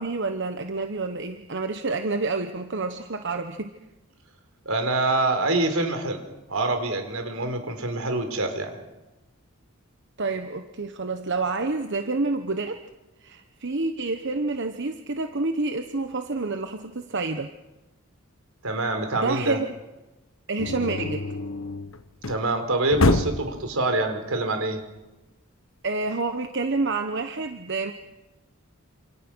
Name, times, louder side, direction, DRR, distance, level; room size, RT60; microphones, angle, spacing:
voice 1, 0.0-3.7 10.2-12.8 13.2-17.5 19.1-19.7 20.5-21.2 25.8-27.9, right 3 dB, 55° right, 7 dB, 1.2 m, -28 dB
voice 2, 4.7-6.2 6.5-8.8 18.6-19.6 22.3-24.8, right 2 dB, 85° right, 6 dB, 4.4 m, -25 dB
sound 1, 20.6-22.5 22.9-23.6, left 2 dB, 65° left, 1.3 m, -25 dB
28.0 x 28.0 x 6.3 m, 1.0 s
head